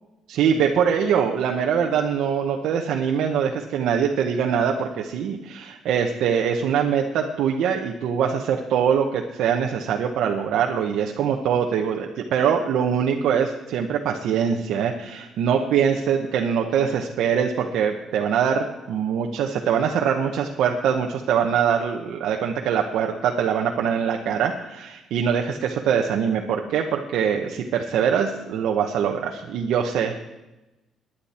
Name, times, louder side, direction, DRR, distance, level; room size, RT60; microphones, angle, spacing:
voice 1, 0.3-30.2, right 7 dB, 65° right, 2 dB, 1.0 m, -23 dB
18.5 x 10.0 x 4.4 m, 1.0 s
cardioid pair, 175°, 0 cm